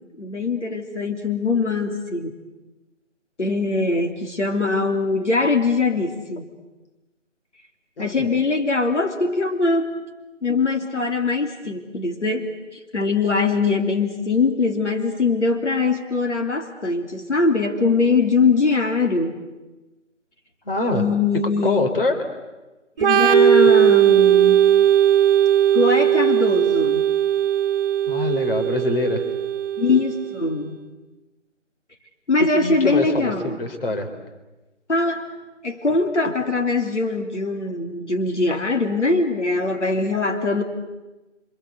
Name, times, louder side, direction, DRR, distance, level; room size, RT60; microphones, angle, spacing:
voice 1, 0.2-2.4 3.4-6.5 8.0-9.9 10.4-19.4 20.9-21.8 23.0-24.7 25.7-27.0 29.8-30.8 32.3-33.6 34.9-35.3 35.6-40.6, left 3 dB, 70° left, 4 dB, 3.4 m, -22 dB
voice 2, 8.0-8.3 20.7-21.0 21.6-22.2 28.1-29.2 32.6-34.1, left 2 dB, 50° left, 6 dB, 3.5 m, -24 dB
Organ, 23.0-30.5, right 10 dB, 15° right, 2.7 m, -18 dB
28.0 x 26.0 x 8.2 m, 1.1 s
figure-of-eight pair, 155°, 37 cm